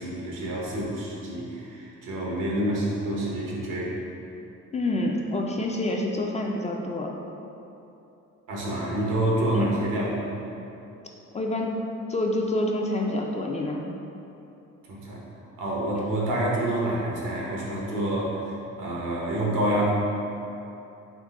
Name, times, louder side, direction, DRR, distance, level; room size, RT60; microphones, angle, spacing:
voice 1, 0.0-3.9 8.5-10.1 14.9-15.2 15.6-19.9, right 1 dB, 85° right, -4 dB, 1.0 m, -28 dB
voice 2, 4.7-7.1 9.5-9.7 11.3-13.9, left 1 dB, 25° left, 0 dB, 0.4 m, -27 dB
3.8 x 3.3 x 3.6 m, 2.9 s
cardioid pair, 90°, 30 cm